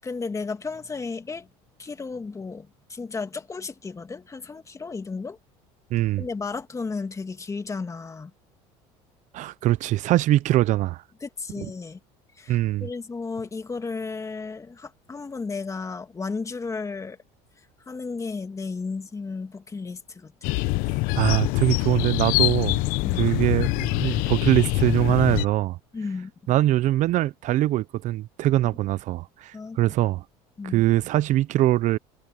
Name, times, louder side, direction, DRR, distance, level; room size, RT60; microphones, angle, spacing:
voice 1, 0.0-1.5 1.8-5.4 6.2-8.3 11.2-12.0 12.3-17.2 17.6-20.3 23.0-23.3 25.9-26.3 29.5-29.8 30.6-30.8, left 4 dB, 20° left, 2.5 m, -34 dB
voice 2, 5.9-6.2 9.3-11.0 12.5-12.9 21.1-22.8 23.2-25.8 26.5-30.2 30.6-32.0, right 15 dB, 55° right, 0.7 m, -22 dB
sound 1, 20.4-25.5, left 22 dB, 70° left, 0.8 m, -24 dB
supercardioid pair, 100°, 15 cm